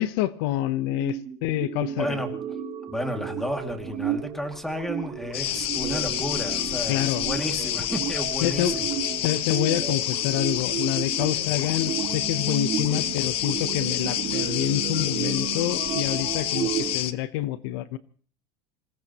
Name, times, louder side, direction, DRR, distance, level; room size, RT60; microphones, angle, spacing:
voice 1, 0.0-2.2 6.9-7.3 8.4-8.8 9.2-18.0, left 14 dB, 65° left, 14 dB, 0.9 m, -27 dB
sound 1, 0.9-16.9, right 10 dB, 40° right, 3.3 m, -33 dB
voice 2, 2.0-2.3 2.9-8.9, equal, ahead, 5 dB, 2.3 m, -32 dB
sound 2, 3.4-15.1, right 3 dB, 15° right, 4.1 m, -53 dB
sound 3, 5.3-17.1, left 13 dB, 45° left, 0.9 m, -28 dB
27.0 x 17.5 x 3.0 m, 0.43 s
supercardioid pair, 135°, 14 cm